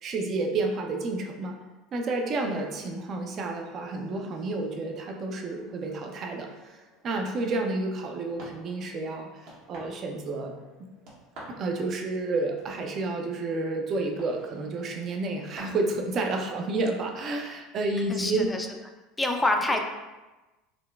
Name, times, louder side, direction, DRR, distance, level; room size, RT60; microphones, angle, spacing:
voice 1, 0.0-1.6 1.9-6.8 7.0-10.9 11.5-18.5, right 2 dB, 45° right, 3 dB, 0.5 m, -30 dB
sound 1, 2.0-15.6, right 1 dB, 65° right, 1.0 m, -53 dB
voice 2, 18.1-18.7 19.2-19.8, left 2 dB, 15° left, 3 dB, 0.4 m, -26 dB
3.8 x 2.2 x 2.3 m, 1.1 s
hypercardioid pair, 75°, 0 cm